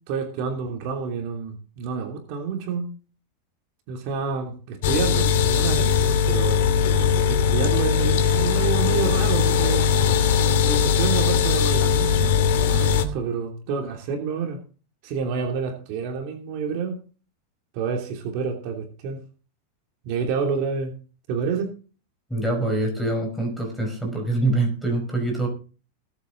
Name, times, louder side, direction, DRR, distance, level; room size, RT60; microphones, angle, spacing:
voice 1, 0.1-2.9 3.9-6.6 7.3-9.9 10.6-12.3 12.7-14.6 15.0-17.0 17.7-19.2 20.0-20.9 21.3-21.7, right 6 dB, 45° right, 2 dB, 2.9 m, -28 dB
sound 1, 4.8-13.0, left 7 dB, 60° left, 2.8 m, -20 dB
voice 2, 22.3-25.5, right 2 dB, ahead, 1 dB, 5.6 m, -24 dB
21.0 x 8.4 x 3.9 m, 0.36 s
supercardioid pair, 160°, 0 cm